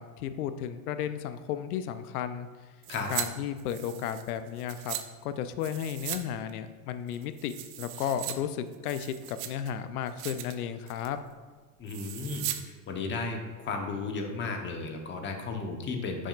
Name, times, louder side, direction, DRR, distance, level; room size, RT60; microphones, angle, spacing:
voice 1, 0.0-2.5 3.1-5.0 5.2-11.2, left 9 dB, 80° left, 11 dB, 0.7 m, -34 dB
sound 1, 2.8-3.3 3.6-5.0 5.6-6.2 6.5-6.6 7.1-8.3 8.7-9.7 10.1-10.5 10.9-11.2 11.9-12.6 12.9-13.0, right 13 dB, 45° right, 0.6 m, -38 dB
voice 2, 11.8-12.5 12.9-16.3, left 4 dB, 25° left, 3 dB, 1.0 m, -34 dB
9.6 x 6.3 x 2.5 m, 1.5 s
supercardioid pair, 135°, 44 cm